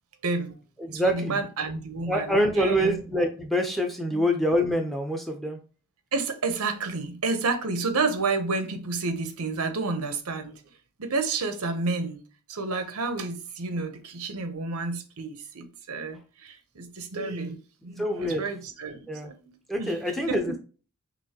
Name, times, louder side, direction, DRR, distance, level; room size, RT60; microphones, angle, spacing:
voice 1, 0.2-0.5 0.9-3.0 4.1-4.2 6.1-10.5 11.0-12.2 12.5-20.0 20.3-20.4, right 3 dB, 90° right, 0.8 m, -30 dB
voice 2, 0.8-1.4 2.1-5.6 18.0-18.4 19.1-19.3 19.7-20.6, equal, ahead, 0.6 m, -26 dB
6.1 x 2.6 x 2.9 m
head